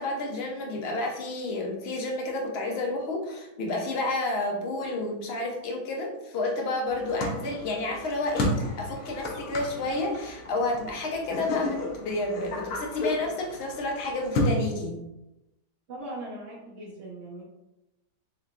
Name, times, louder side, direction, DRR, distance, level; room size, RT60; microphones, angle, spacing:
voice 1, 0.0-15.0, left 2 dB, 55° left, 0 dB, 0.8 m, -30 dB
sound 1, 6.9-14.5, left 1 dB, 85° left, 1.4 m, -33 dB
voice 2, 15.9-17.4, right 1 dB, 55° right, -5 dB, 0.9 m, -39 dB
4.6 x 3.1 x 2.4 m, 0.95 s
omnidirectional pair, 1.7 m